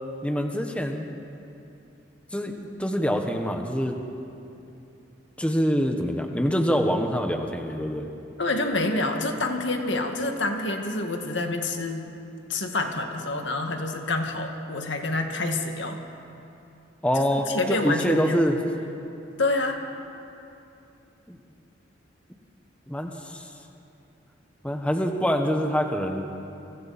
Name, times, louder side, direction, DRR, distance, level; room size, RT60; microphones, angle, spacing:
voice 1, 0.2-1.1 2.3-4.0 5.4-8.1 17.0-18.5 21.3-21.4 22.9-23.5 24.6-26.2, equal, 5° left, 3 dB, 1.3 m, -25 dB
voice 2, 8.4-12.1 12.5-16.0 17.5-18.4 19.4-19.8, left 2 dB, 75° left, 3 dB, 2.0 m, -27 dB
30.0 x 24.0 x 4.3 m, 2.8 s
head